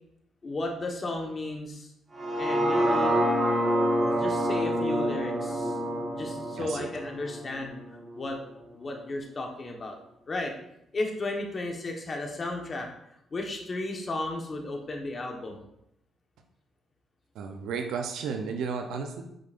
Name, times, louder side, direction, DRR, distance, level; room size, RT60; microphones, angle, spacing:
voice 1, 0.4-1.9 2.4-3.2 4.0-5.8 6.2-7.8 8.2-8.4 8.7-10.0 10.3-10.5 10.9-12.9 13.3-15.6, left 2 dB, 40° left, 2 dB, 1.3 m, -34 dB
sound 1, 2.1-8.3 8.7-8.8, right 1 dB, 40° right, 1.3 m, -27 dB
voice 2, 6.6-6.9 17.3-19.2, right 5 dB, 80° right, 4 dB, 0.7 m, -33 dB
7.7 x 5.3 x 2.6 m, 0.81 s
cardioid pair, 75°, 0 cm